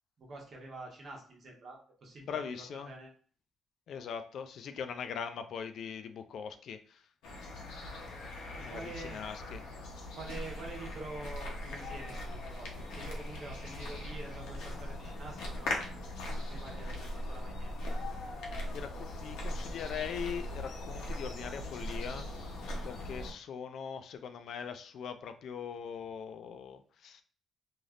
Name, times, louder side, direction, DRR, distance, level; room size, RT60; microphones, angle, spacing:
voice 1, 0.2-3.1 8.5-9.2 10.1-15.8 16.4-17.9, right 2 dB, 50° right, -1 dB, 1.1 m, -47 dB
voice 2, 2.3-2.9 3.9-7.0 8.6-9.7 18.7-22.3 22.8-27.2, left 7 dB, 70° left, 9 dB, 0.3 m, -41 dB
sound 1, 7.2-23.3, left 1 dB, 90° left, 0.8 m, -40 dB
3.2 x 2.6 x 2.4 m, 0.43 s
cardioid pair, 90°, 0 cm